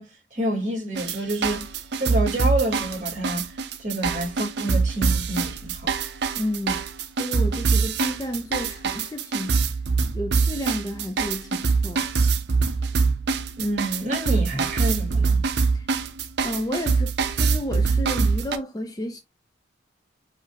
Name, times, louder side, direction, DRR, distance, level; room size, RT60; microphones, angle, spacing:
voice 1, 0.0-1.7 1.9-5.9 13.6-15.4, right 1 dB, 40° right, 2.3 m, -28 dB
sound 1, 1.0-18.6, right 4 dB, 60° right, 0.5 m, -24 dB
voice 2, 6.4-6.9 7.2-9.6 10.1-12.1 15.7-15.9 16.4-19.2, left 1 dB, 20° left, 0.4 m, -31 dB
5.1 x 2.6 x 2.8 m
head